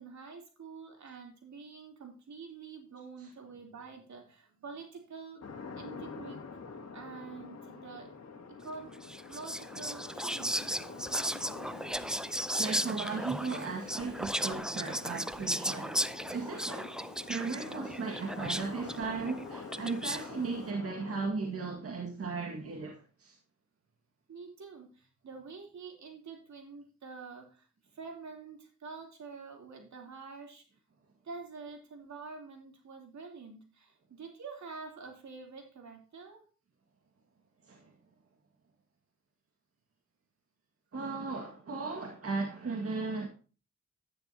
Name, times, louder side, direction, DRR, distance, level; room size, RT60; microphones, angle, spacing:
voice 1, 0.0-6.4 6.9-8.1 8.5-8.9 9.3-10.7 24.3-27.7 27.9-30.6 31.2-36.4, right 4 dB, 75° right, 3.3 m, -47 dB
sound 1, 5.4-21.3, left 4 dB, 60° left, 2.0 m, -47 dB
Whispering, 9.0-20.3, equal, ahead, 0.5 m, -36 dB
voice 2, 12.6-23.4 37.6-37.9 40.9-43.3, right 4 dB, 50° right, 1.9 m, -36 dB
10.5 x 10.0 x 2.8 m
cardioid pair, 70°, 29 cm